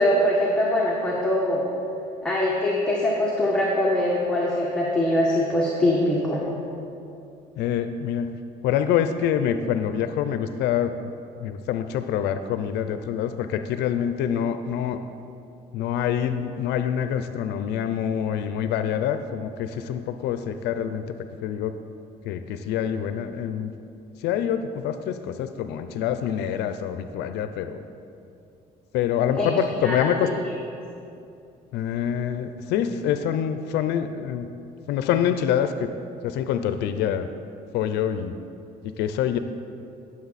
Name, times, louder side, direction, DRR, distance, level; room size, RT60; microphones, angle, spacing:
voice 1, 0.0-1.7 2.2-6.4 29.3-29.5 29.8-30.3, left 1 dB, 5° left, -5 dB, 1.6 m, -23 dB
voice 2, 7.6-8.3 8.6-11.1 11.4-15.0 15.7-21.2 21.4-21.7 22.2-23.7 24.2-27.8 28.9-30.3 31.7-34.5 34.9-35.9 36.2-37.3 37.7-38.4 39.0-39.4, left 9 dB, 85° left, 9 dB, 0.5 m, -26 dB
16.0 x 7.4 x 4.1 m, 2.6 s
cardioid pair, 110°, 17 cm